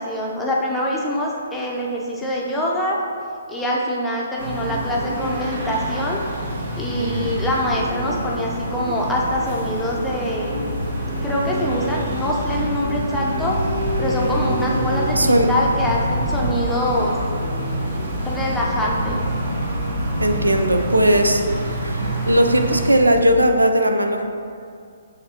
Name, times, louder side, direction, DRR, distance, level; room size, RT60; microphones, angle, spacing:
voice 1, 0.0-3.0 3.5-6.2 6.8-10.6 11.2-13.6 14.0-17.2 18.2-19.3, left 1 dB, 5° left, -4 dB, 0.6 m, -24 dB
sound 1, 4.4-22.9, right 1 dB, 45° right, 0.9 m, -27 dB
voice 2, 7.0-7.3 15.2-15.5 20.2-21.4 21.8-24.2, right 1 dB, 90° right, 5 dB, 0.4 m, -18 dB
sound 2, 10.5-23.4, left 3 dB, 65° left, 0.5 m, -31 dB
6.4 x 2.6 x 2.8 m, 2.3 s
figure-of-eight pair, 135°, 0 cm